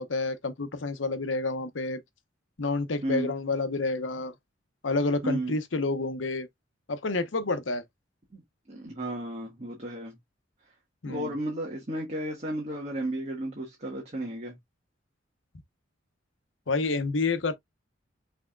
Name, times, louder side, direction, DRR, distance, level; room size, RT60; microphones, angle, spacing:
voice 1, 0.0-2.0 2.6-4.3 4.8-6.5 6.9-7.8 11.0-11.3 16.7-17.5, left 3 dB, 70° left, 0.9 m, -29 dB
voice 2, 3.0-3.3 5.2-5.6 8.3-8.4 8.7-10.2 11.0-14.6, right 1 dB, 35° right, 1.4 m, -33 dB
6.1 x 3.5 x 2.2 m
head